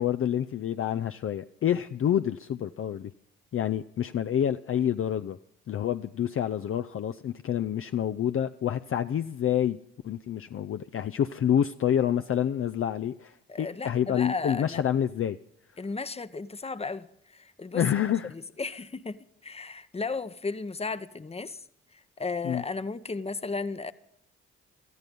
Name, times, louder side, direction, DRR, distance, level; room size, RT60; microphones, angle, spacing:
voice 1, 0.0-3.1 3.5-5.4 5.7-9.8 10.0-15.4 17.7-18.3 22.4-22.6, left 10 dB, 45° left, 0.5 m, -28 dB
voice 2, 13.5-14.8 15.8-17.8 18.3-21.6 22.2-23.9, left 4 dB, 20° left, 0.8 m, -34 dB
17.5 x 13.0 x 5.4 m
hypercardioid pair, 45°, 31 cm